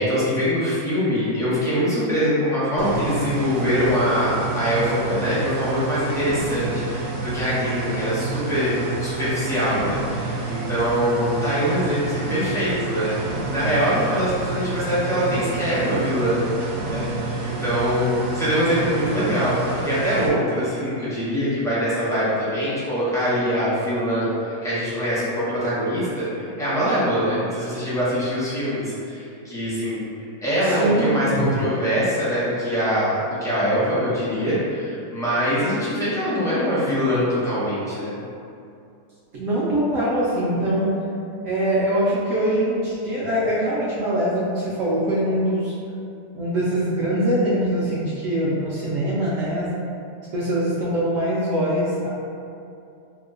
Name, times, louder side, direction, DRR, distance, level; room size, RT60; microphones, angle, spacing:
voice 1, 0.0-16.4 16.8-30.1 30.4-38.2, equal, 5° left, -11 dB, 0.5 m, -23 dB
sound 1, 2.8-20.3, right 3 dB, 85° right, 1.1 m, -29 dB
voice 2, 30.6-31.6 39.3-40.9 41.4-45.7 46.3-49.7 50.3-52.1, right 1 dB, 65° right, -8 dB, 0.9 m, -23 dB
2.9 x 2.2 x 3.6 m, 2.5 s
omnidirectional pair, 1.7 m